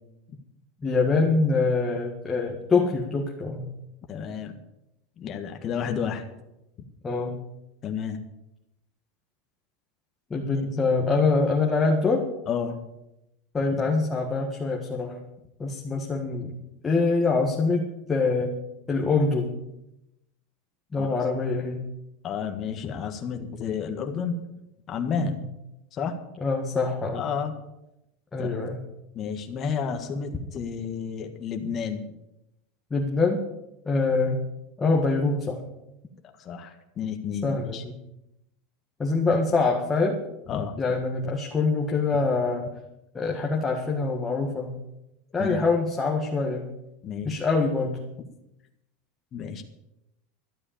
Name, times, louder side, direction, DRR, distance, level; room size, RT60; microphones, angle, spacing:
voice 1, 0.8-3.7 7.0-7.4 10.3-12.2 13.5-15.2 15.6-16.5 16.8-17.8 18.1-18.5 18.9-19.5 20.9-21.9 25.2-25.4 26.4-27.3 28.3-28.8 32.9-33.4 33.8-34.4 34.8-35.6 37.4-38.0 39.0-40.2 40.8-42.6 43.1-44.8 45.3-46.7 47.2-48.0, left 3 dB, 15° left, -1 dB, 1.7 m, -24 dB
voice 2, 4.1-4.5 5.2-6.2 7.8-8.2 12.5-12.8 21.0-21.1 22.2-24.4 24.9-25.4 25.9-26.2 27.1-27.5 28.4-28.5 29.1-32.1 36.4-37.8 40.5-40.8 45.4-45.6 47.0-47.4 49.3-49.6, left 6 dB, 30° left, 4 dB, 1.6 m, -31 dB
13.0 x 8.6 x 8.6 m, 0.89 s
supercardioid pair, 150°, 0 cm